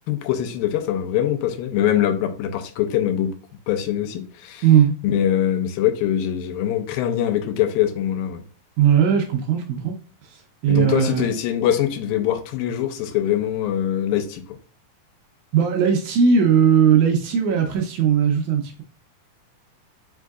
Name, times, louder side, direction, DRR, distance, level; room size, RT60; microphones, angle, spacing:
voice 1, 0.1-3.3 3.7-4.6 5.0-8.4 10.7-14.4, left 10 dB, 90° left, 2.3 m, -23 dB
voice 2, 4.6-4.9 8.8-9.9 10.3-11.3 15.5-18.8, right 7 dB, 75° right, 1.9 m, -18 dB
5.3 x 3.6 x 2.3 m
omnidirectional pair, 3.9 m